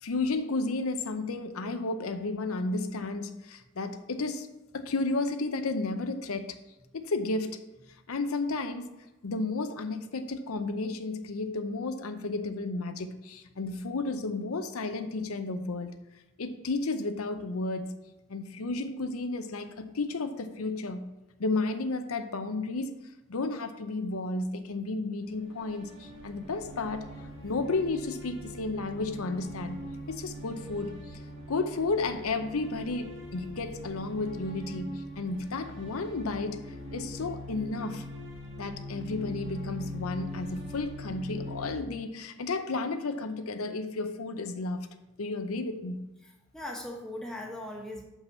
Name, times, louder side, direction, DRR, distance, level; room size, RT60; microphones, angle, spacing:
voice 1, 0.0-4.5 4.7-6.5 6.9-7.6 8.1-8.9 9.2-16.0 16.4-18.0 18.3-21.1 21.4-22.9 23.3-27.1 27.4-29.8 30.1-31.2 31.5-36.6 36.9-38.0 38.6-44.9 45.2-46.0, left 3 dB, 90° left, 8 dB, 0.7 m, -32 dB
sound 1, 25.2-41.7, equal, 60° right, 1.7 m, -42 dB
voice 2, 46.2-48.0, left 1 dB, 5° left, -1 dB, 1.1 m, -39 dB
5.9 x 5.6 x 7.0 m, 1.0 s
head